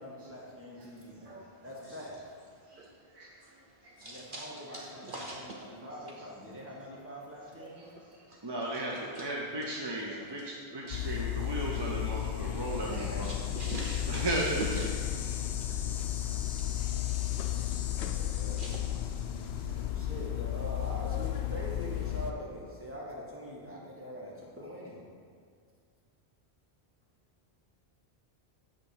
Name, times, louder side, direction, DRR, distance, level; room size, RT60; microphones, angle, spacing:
voice 1, 0.0-2.4 4.0-7.9 8.6-9.2 12.7-13.5 18.0-18.7 19.7-25.0, equal, 10° right, -5 dB, 1.5 m, -44 dB
voice 2, 4.0-4.5 5.1-5.6 7.6-8.4 9.1-9.3 10.1-10.2 10.8-10.9 13.2-14.0 14.3-14.9 15.5-15.9 16.3-17.2 17.4-17.5 18.6-18.8, right 2 dB, 55° right, -2 dB, 0.8 m, -43 dB
voice 3, 8.4-13.3 14.1-14.7, right 2 dB, 30° right, -3 dB, 0.6 m, -35 dB
sound 1, 10.9-22.3, left 12 dB, 85° left, 0.9 m, -33 dB
8.2 x 3.7 x 6.6 m, 2.2 s
omnidirectional pair, 1.1 m